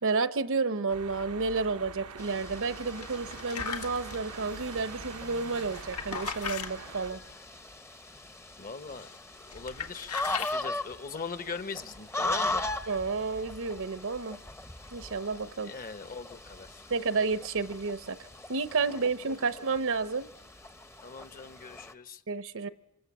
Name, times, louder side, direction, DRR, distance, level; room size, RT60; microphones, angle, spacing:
voice 1, 0.0-7.2 12.9-14.4 14.9-15.7 16.9-18.2 18.5-20.3 22.3-22.7, right 4 dB, 60° right, 0.9 m, -31 dB
sound 1, 0.9-7.1, right 5 dB, 90° right, 1.1 m, -44 dB
sound 2, 2.2-21.9, left 2 dB, 10° left, 0.9 m, -40 dB
sound 3, 3.0-4.2 5.5-6.7 8.9-9.2 9.5-10.6, left 6 dB, 85° left, 1.8 m, -37 dB
voice 2, 8.6-9.1 9.4-12.7 15.6-16.8 18.8-19.0 19.4-19.5 21.0-22.2, left 4 dB, 40° left, 1.1 m, -41 dB
26.5 x 26.0 x 7.5 m
head